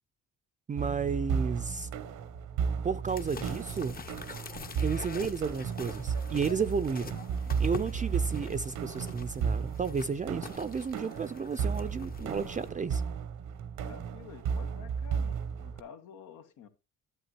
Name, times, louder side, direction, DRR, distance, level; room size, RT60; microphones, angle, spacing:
voice 1, 0.7-1.9 2.8-4.0 4.8-7.2 7.6-13.0, right 5 dB, 25° right, 0.4 m, -32 dB
sound 1, 0.8-15.8, right 6 dB, 85° right, 0.8 m, -34 dB
sound 2, 3.1-12.7, left 4 dB, 30° left, 0.7 m, -45 dB
voice 2, 13.8-16.7, left 7 dB, 90° left, 1.3 m, -50 dB
11.5 x 8.2 x 3.0 m
cardioid pair, 90°, 30 cm